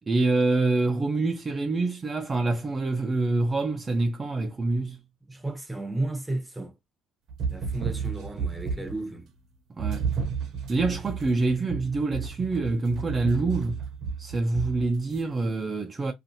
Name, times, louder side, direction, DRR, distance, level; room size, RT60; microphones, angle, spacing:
voice 1, 0.1-5.0 9.8-10.1 10.7-13.8 14.2-16.1, right 3 dB, 30° right, 0.4 m, -26 dB
voice 2, 5.3-6.7 7.5-9.3, right 2 dB, 5° right, 0.8 m, -33 dB
sound 1, 7.3-9.1 9.8-15.2, right 6 dB, 65° right, 0.7 m, -32 dB
2.5 x 2.4 x 2.7 m
supercardioid pair, 85°, 0 cm